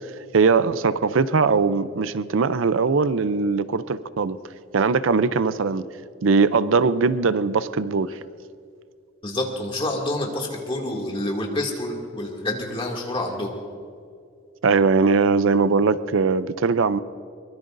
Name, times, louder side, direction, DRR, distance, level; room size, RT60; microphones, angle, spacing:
voice 1, 0.3-4.4 4.7-5.9 6.2-8.2 14.6-17.0, right 4 dB, 75° right, 14 dB, 0.5 m, -20 dB
voice 2, 9.2-13.6, left 1 dB, 25° left, -1 dB, 2.4 m, -28 dB
23.5 x 21.5 x 2.6 m, 2.3 s
head